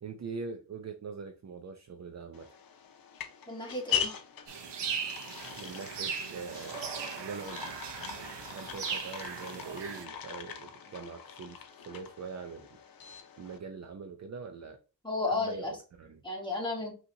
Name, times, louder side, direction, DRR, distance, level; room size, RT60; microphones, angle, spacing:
voice 1, 0.0-2.6 5.6-6.9 7.1-7.6 8.5-12.8 13.4-14.8 15.3-16.2, right 5 dB, 40° right, 0.5 m, -43 dB
sound 1, 2.3-13.6, left 8 dB, 55° left, 0.7 m, -41 dB
voice 2, 3.5-4.1 15.0-15.7 16.2-16.9, left 3 dB, 10° left, 1.5 m, -33 dB
sound 2, 4.5-10.0, right 6 dB, 75° right, 0.9 m, -38 dB
5.4 x 2.9 x 2.7 m
wide cardioid pair, 115°, 42 cm